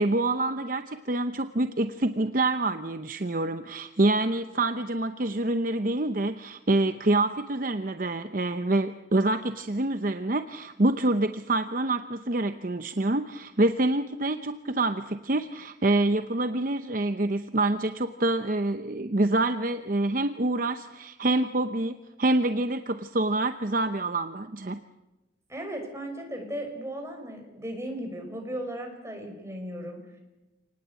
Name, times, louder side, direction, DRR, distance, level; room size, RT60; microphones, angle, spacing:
voice 1, 0.0-24.8, right 2 dB, 45° right, 9 dB, 0.8 m, -26 dB
voice 2, 25.5-30.2, right 1 dB, 15° right, 3 dB, 5.4 m, -36 dB
27.5 x 19.5 x 8.3 m, 1.0 s
head